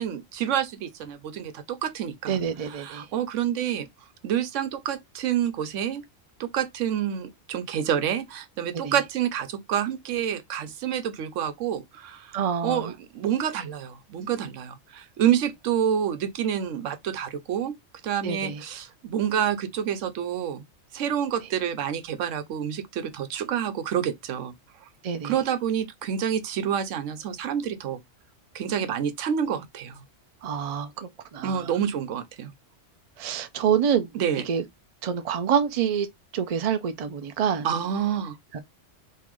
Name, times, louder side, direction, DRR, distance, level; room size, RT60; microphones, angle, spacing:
voice 1, 0.0-2.4 2.8-3.9 4.2-6.0 6.4-17.7 18.0-20.6 20.9-24.5 25.2-28.0 28.5-30.0 31.4-32.5 34.1-34.5 37.6-38.4, right 9 dB, 90° right, 1.0 m, -28 dB
voice 2, 2.3-3.1 8.7-8.9 12.3-12.9 18.2-18.6 25.0-25.4 30.4-31.7 33.2-34.1 34.5-34.6 35.0-36.1 36.3-37.7 38.5-38.6, right 8 dB, 50° right, 0.4 m, -27 dB
3.7 x 2.5 x 3.1 m
omnidirectional pair, 1.3 m